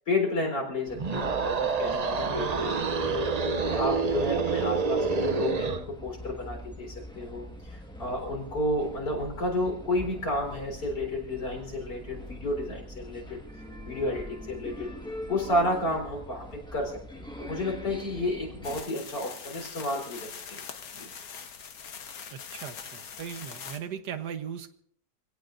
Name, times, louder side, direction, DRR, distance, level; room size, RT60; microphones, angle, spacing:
voice 1, 0.0-13.4 13.8-14.9 15.3-20.6 20.9-21.1, left 1 dB, 85° left, 1 dB, 4.8 m, -31 dB
sound 1, 0.9-18.8, equal, 5° left, 1.4 m, -44 dB
sound 2, 0.9-5.9, right 4 dB, 60° right, 0.4 m, -28 dB
sound 3, 18.6-23.8, left 7 dB, 65° left, 1.5 m, -42 dB
voice 2, 22.3-24.8, right 8 dB, 75° right, 9 dB, 1.6 m, -38 dB
26.5 x 17.5 x 2.6 m, 0.65 s
omnidirectional pair, 1.7 m